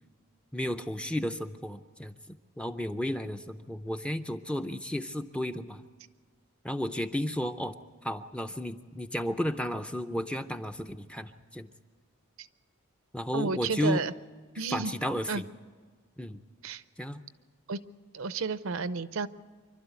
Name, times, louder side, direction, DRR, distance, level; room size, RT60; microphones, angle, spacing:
voice 1, 0.5-5.8 6.6-7.8 8.0-11.7 13.1-14.0 14.7-15.5 16.2-16.4 17.0-17.2, left 1 dB, 5° left, 7 dB, 0.5 m, -33 dB
voice 2, 13.3-14.1 14.6-14.9 15.3-15.4 16.6-16.8 17.7-17.8 18.1-19.3, right 4 dB, 65° right, 14 dB, 0.6 m, -31 dB
26.0 x 12.0 x 8.2 m, 1.5 s
head